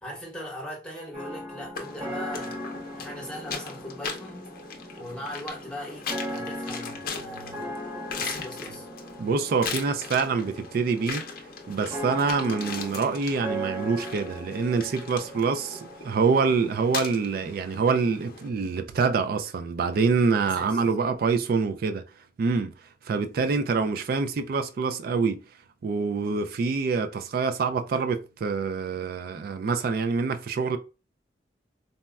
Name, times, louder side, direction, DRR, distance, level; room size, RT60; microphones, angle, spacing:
voice 1, 0.0-2.6 2.9-4.6 5.0-7.7 8.1-8.9 20.3-20.8 23.3-23.7, equal, 5° left, 1.0 m, -39 dB
sound 1, 1.1-16.1, equal, 25° right, 0.7 m, -38 dB
sound 2, 1.7-18.5, left 5 dB, 55° left, 0.6 m, -39 dB
voice 2, 9.2-11.2 11.7-22.0 22.4-22.7 23.1-25.4 25.8-30.8, right 4 dB, 55° right, 0.3 m, -26 dB
4.0 x 2.2 x 2.2 m
head